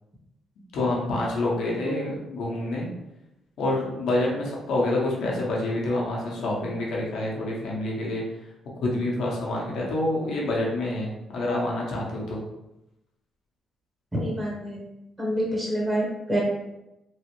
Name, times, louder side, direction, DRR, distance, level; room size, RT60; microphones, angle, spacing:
voice 1, 0.7-2.9 3.6-8.2 8.8-12.4, left 2 dB, 75° left, -3 dB, 0.8 m, -27 dB
voice 2, 14.1-14.8 15.2-16.4, equal, 15° right, -4 dB, 0.9 m, -27 dB
3.1 x 2.1 x 3.0 m, 0.90 s
cardioid pair, 90°, 0 cm